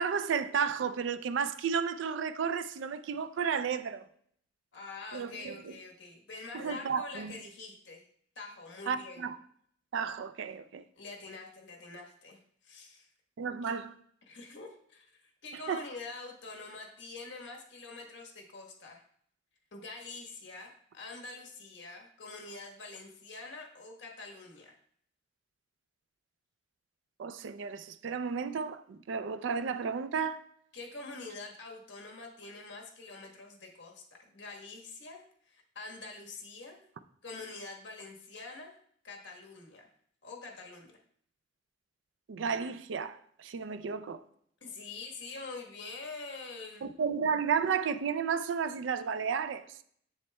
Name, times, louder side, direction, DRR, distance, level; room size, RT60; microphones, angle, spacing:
voice 1, 0.0-4.0 5.1-5.6 6.5-7.4 8.9-9.4 9.9-10.8 13.4-13.9 15.7-15.8 27.2-30.4 42.3-44.2 46.8-49.6, right 6 dB, 70° right, 0.4 m, -32 dB
voice 2, 4.7-8.0 8.3-9.2 11.0-13.1 13.4-13.8 14.3-19.0 19.7-24.8 30.7-36.9 37.2-38.8 39.0-39.9 40.2-40.9 44.6-46.8, left 3 dB, 65° left, 1.3 m, -45 dB
7.4 x 7.0 x 2.2 m
head